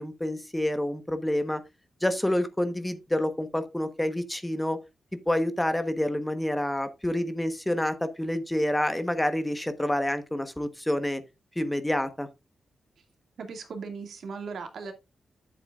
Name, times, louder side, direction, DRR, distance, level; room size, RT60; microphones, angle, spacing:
voice 1, 0.0-1.6 2.0-4.8 5.3-11.2 11.6-12.3, left 1 dB, 10° left, 1.1 m, -28 dB
voice 2, 13.4-14.9, right 5 dB, 75° right, 2.2 m, -37 dB
11.0 x 7.9 x 2.5 m
wide cardioid pair, 105°, 0 cm